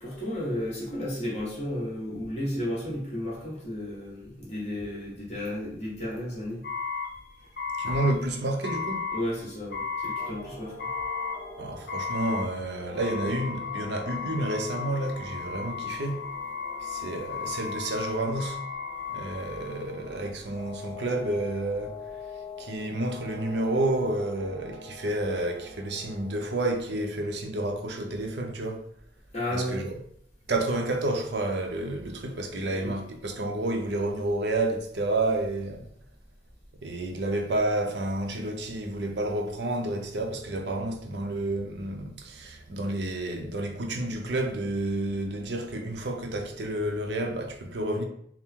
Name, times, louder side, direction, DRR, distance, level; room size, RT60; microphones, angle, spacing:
voice 1, 0.0-6.6 9.1-10.8 29.3-29.8 32.8-33.0, left 1 dB, 35° left, 1.4 m, -33 dB
sound 1, 6.6-20.2, left 5 dB, 55° left, 0.7 m, -35 dB
voice 2, 7.8-9.1 11.6-16.2 16.8-18.6 19.1-22.0 22.6-28.9 29.5-29.9 30.5-35.9 36.8-48.0, right 1 dB, 65° right, 0.6 m, -30 dB
sound 2, 10.2-26.8, left 3 dB, 20° left, 1.1 m, -46 dB
3.6 x 2.0 x 4.3 m
head